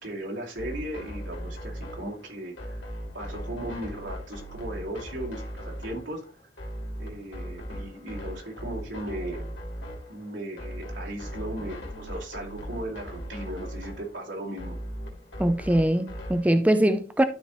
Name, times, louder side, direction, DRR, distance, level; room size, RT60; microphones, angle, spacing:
voice 1, 0.0-2.8 3.1-6.2 7.0-9.4 10.1-14.8, right 1 dB, 80° right, 2.6 m, -37 dB
sound 1, 0.6-16.5, equal, 80° left, 2.6 m, -38 dB
voice 2, 15.4-17.2, right 1 dB, 10° right, 0.4 m, -22 dB
12.0 x 4.4 x 3.1 m
head